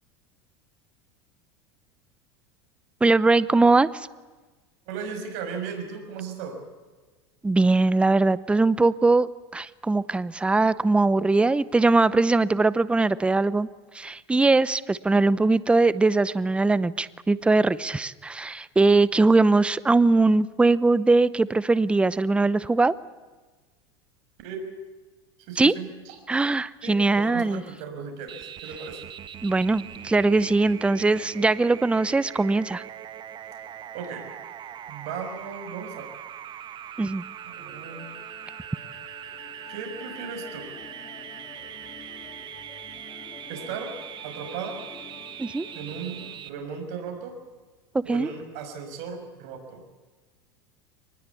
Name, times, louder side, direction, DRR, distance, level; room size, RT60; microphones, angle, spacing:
voice 1, 3.0-4.1 7.4-13.7 13.9-22.9 25.6-25.7 26.3-27.6 29.4-32.8 37.0-37.2 45.4-45.7 48.1-48.3, right 3 dB, 10° right, 18 dB, 0.7 m, -21 dB
voice 2, 4.9-6.6 24.4-24.6 25.5-26.2 26.8-29.0 33.9-34.3 34.9-36.1 37.4-38.1 39.7-40.7 43.5-43.9 44.2-44.8 45.7-47.4 48.0-49.8, right 6 dB, 60° right, 5 dB, 6.1 m, -36 dB
sound 1, 28.3-46.5, right 10 dB, 35° right, 1.4 m, -41 dB
Musical instrument, 36.3-46.4, left 6 dB, 30° left, 3.0 m, -48 dB
24.0 x 20.0 x 8.4 m, 1.3 s
supercardioid pair, 115°, 13 cm